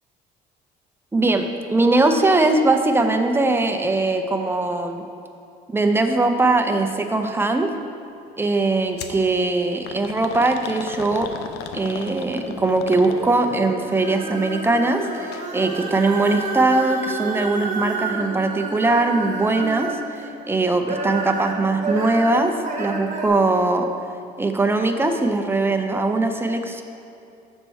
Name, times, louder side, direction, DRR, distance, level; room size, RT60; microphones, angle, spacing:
voice 1, 1.1-5.0 5.7-7.7 8.4-11.3 11.7-20.0 20.5-23.9 24.4-26.8, right 2 dB, 15° right, 5 dB, 0.5 m, -21 dB
sound 1, 9.0-9.2 9.9-13.5 15.2-15.5 15.8-15.9 16.8-16.9, left 7 dB, 80° left, 0.5 m, -36 dB
sound 2, 12.8-20.3 20.7-23.3, right 4 dB, 45° right, 1.1 m, -30 dB
6.5 x 4.4 x 6.3 m, 2.7 s
cardioid pair, 110°, 17 cm